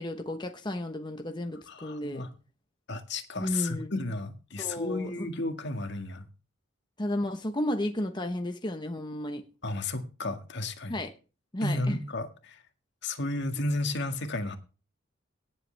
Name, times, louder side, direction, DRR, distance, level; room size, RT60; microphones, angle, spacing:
voice 1, 0.0-2.2 3.4-4.0 4.6-5.3 7.0-9.4 10.9-11.1 11.5-12.0, left 1 dB, 25° left, 1.1 m, -33 dB
voice 2, 1.7-2.3 2.9-6.3 9.6-11.0 11.6-12.6 13.0-14.6, left 2 dB, 60° left, 1.9 m, -33 dB
18.0 x 8.0 x 3.4 m
head